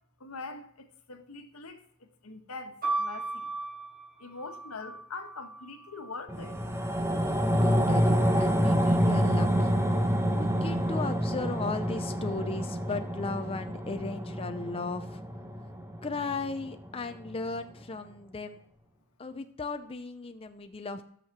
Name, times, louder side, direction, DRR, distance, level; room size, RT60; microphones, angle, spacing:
voice 1, 0.2-1.8 2.2-3.5 4.2-6.5, left 4 dB, 85° left, 1.3 m, -43 dB
sound 1, 2.8-6.7 7.5-8.2, right 3 dB, 45° right, 3.8 m, -37 dB
sound 2, 6.3-16.9 17.3-17.4, equal, 10° right, 0.9 m, -27 dB
voice 2, 7.6-9.7 10.3-15.2 16.0-18.6 19.2-21.0, left 3 dB, 25° left, 0.5 m, -36 dB
13.5 x 6.5 x 5.9 m
head